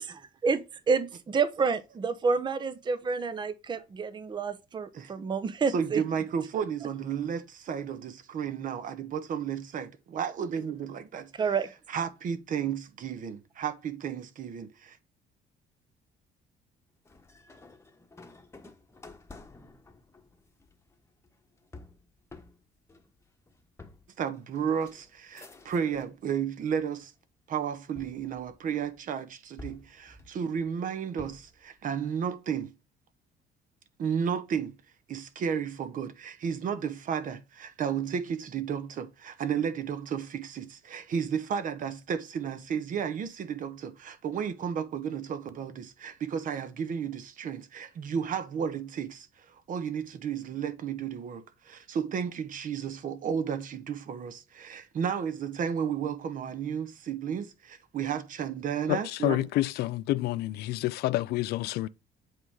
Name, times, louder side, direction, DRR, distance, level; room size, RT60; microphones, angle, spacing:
voice 1, 0.0-6.0 6.5-6.6 11.4-11.7, right 5 dB, 25° right, 0.7 m, -29 dB
voice 2, 5.7-11.3 11.9-15.0 24.2-27.1 27.5-32.7 34.0-34.7 35.1-59.5, right 7 dB, 50° right, 1.1 m, -33 dB
sound 1, 17.0-26.2 26.6-27.2 28.0-29.0 29.6-31.6, left 2 dB, 15° left, 1.1 m, -51 dB
voice 3, 58.9-61.9, left 16 dB, 75° left, 0.4 m, -28 dB
8.1 x 3.7 x 4.7 m
cardioid pair, 110°, 17 cm